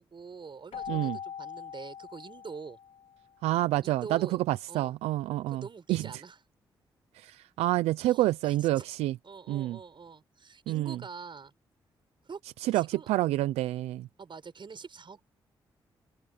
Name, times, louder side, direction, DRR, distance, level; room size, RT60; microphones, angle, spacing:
voice 1, 0.0-2.8 3.8-4.9 5.5-6.4 8.0-8.9 9.2-11.5 12.2-12.4 12.7-13.1 14.2-15.2, right 5 dB, 50° right, 6.1 m, -45 dB
Keyboard (musical), 0.7-3.3, left 8 dB, 75° left, 3.9 m, -41 dB
voice 2, 3.4-5.6 5.9-6.1 7.1-9.2 9.5-9.8 10.7-11.0 12.6-14.1, right 16 dB, 85° right, 0.7 m, -28 dB
open air
supercardioid pair, 45°, 10 cm